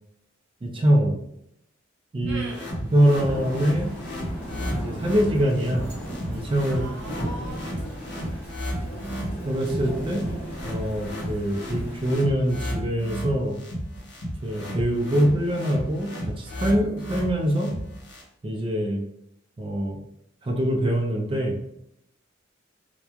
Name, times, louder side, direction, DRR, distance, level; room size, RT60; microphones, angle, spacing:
voice 1, 0.6-1.2 2.1-2.5 2.8-3.9 4.7-5.9 6.3-7.0 9.4-10.2 10.6-13.6 14.4-16.1 16.4-17.8 18.4-19.1 19.6-20.0 20.4-21.6, right 1 dB, 25° right, 2 dB, 0.3 m, -24 dB
sound 1, 2.2-18.2, equal, 60° left, 0.8 m, -33 dB
voice 2, 2.3-2.7 6.7-8.5, right 1 dB, 65° right, -1 dB, 0.7 m, -41 dB
Thunder / Rain, 3.1-12.2, equal, 10° left, 1.4 m, -36 dB
2.9 x 2.1 x 2.3 m, 0.77 s
head